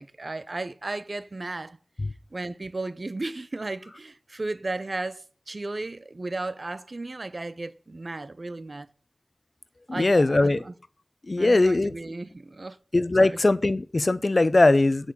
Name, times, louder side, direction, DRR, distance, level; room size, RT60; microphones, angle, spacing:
voice 1, 0.0-1.8 2.3-8.9 9.9-10.7 11.4-12.8 13.2-13.4, right 2 dB, 70° right, 0.7 m, -35 dB
voice 2, 10.0-10.6 11.3-11.9 12.9-15.1, left 2 dB, 65° left, 0.7 m, -20 dB
8.2 x 6.3 x 5.2 m
wide cardioid pair, 45°, 0 cm